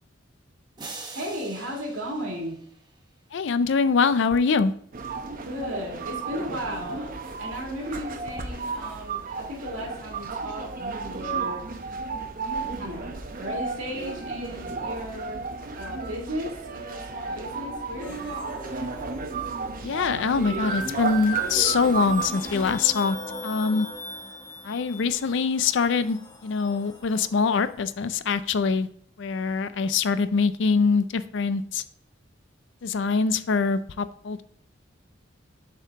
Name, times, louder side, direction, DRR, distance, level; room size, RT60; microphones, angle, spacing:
sound 1, 0.8-3.1, right 3 dB, 20° right, 1.0 m, -43 dB
voice 1, 1.1-2.6 5.4-7.1 7.4-11.7 12.7-13.1 13.4-15.5 15.7-19.2 20.3-20.7, equal, 90° right, 2.2 m, -35 dB
voice 2, 3.3-4.7 19.8-23.2 23.4-23.9 24.6-28.9 29.2-31.8 32.8-34.4, left 5 dB, 65° left, 0.4 m, -24 dB
sound 2, 4.9-22.7, right 4 dB, 45° right, 0.7 m, -33 dB
sound 3, 18.0-27.7, left 2 dB, 20° left, 0.9 m, -42 dB
7.3 x 4.6 x 3.5 m
head